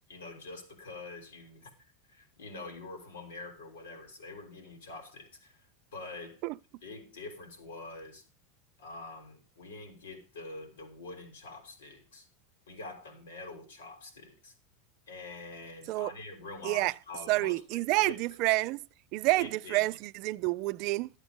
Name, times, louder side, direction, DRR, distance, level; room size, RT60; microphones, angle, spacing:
voice 1, 0.1-1.7 2.1-6.4 6.8-8.2 8.8-12.3 12.7-14.5 15.1-18.2 19.3-20.0, left 3 dB, 90° left, 3.5 m, -45 dB
voice 2, 17.3-18.8 19.1-21.1, right 21 dB, 55° right, 0.4 m, -28 dB
12.0 x 8.0 x 5.3 m
hypercardioid pair, 95°, 0 cm